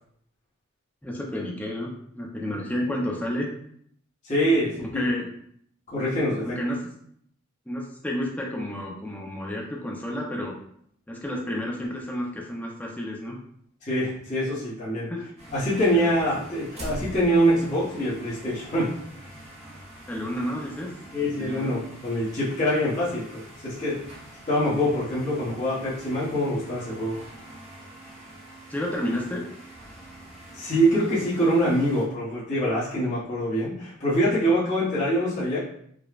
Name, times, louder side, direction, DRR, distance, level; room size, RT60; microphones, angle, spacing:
voice 1, 1.0-3.5 4.8-5.3 6.4-6.9 7.7-10.6 11.1-13.4 15.1-15.3 15.9-16.1 20.1-21.7 28.7-29.5, left 1 dB, 10° left, -2 dB, 0.6 m, -31 dB
voice 2, 4.2-5.0 5.9-6.6 13.9-15.1 15.5-18.9 21.1-24.0 24.5-27.2 30.5-35.6, equal, 35° left, -10 dB, 1.1 m, -24 dB
sound 1, 15.4-32.0, right 1 dB, 30° right, 0.9 m, -44 dB
4.9 x 2.3 x 2.4 m, 0.66 s
head